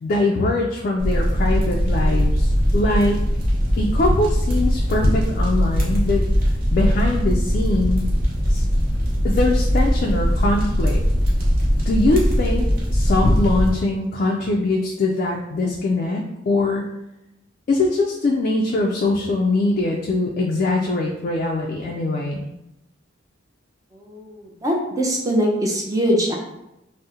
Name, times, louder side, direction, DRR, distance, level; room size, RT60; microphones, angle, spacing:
voice 1, 0.0-3.2 3.8-6.2 6.7-8.0 8.5-8.6 9.2-11.0 11.9-16.9 17.7-22.4, left 2 dB, 45° left, 0 dB, 0.3 m, -22 dB
sound 1, 1.0-13.7, equal, 50° right, 0.8 m, -20 dB
voice 2, 23.9-26.4, equal, 20° right, -1 dB, 0.5 m, -22 dB
2.7 x 2.0 x 3.6 m, 0.90 s
head